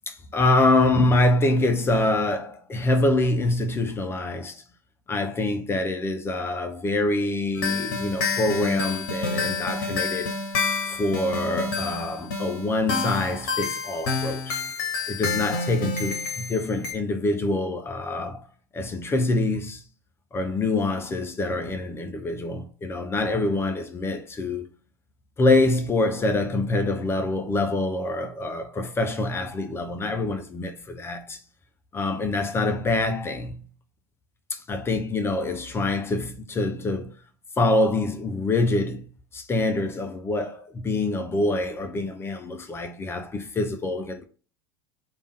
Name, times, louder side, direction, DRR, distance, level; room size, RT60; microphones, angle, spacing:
voice 1, 0.1-4.6 5.1-10.3 10.9-14.6 15.1-18.4 18.7-19.8 20.3-24.7 25.4-31.4 31.9-33.7 34.5-37.2 37.6-44.2, left 2 dB, 20° left, 0.6 m, -25 dB
sound 1, 7.6-16.9, left 4 dB, 55° left, 0.9 m, -29 dB
3.4 x 2.5 x 3.4 m
figure-of-eight pair, 80°, 12 cm